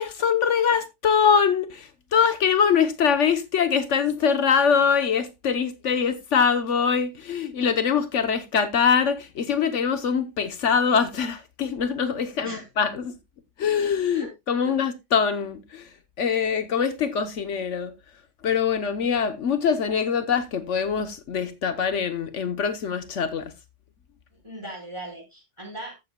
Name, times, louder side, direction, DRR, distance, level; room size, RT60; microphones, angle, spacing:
voice 1, 0.0-13.2 13.6-15.9 16.2-17.9 18.4-23.5, left 6 dB, 75° left, 1.3 m, -23 dB
voice 2, 24.4-25.9, right 1 dB, 25° right, 4.8 m, -38 dB
14.5 x 8.2 x 2.3 m
omnidirectional pair, 1.3 m